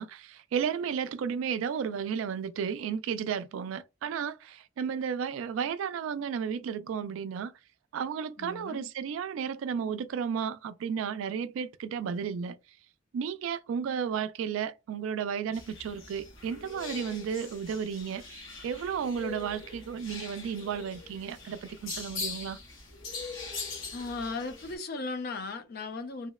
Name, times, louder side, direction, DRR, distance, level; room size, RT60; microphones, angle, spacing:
voice 1, 0.0-7.5 7.9-12.6 13.1-22.6, right 7 dB, 85° right, 0.3 m, -33 dB
voice 2, 8.4-8.9 23.9-26.3, left 3 dB, 50° left, 0.4 m, -36 dB
sound 1, 15.5-24.8, left 4 dB, 85° left, 0.8 m, -42 dB
2.7 x 2.0 x 2.2 m
head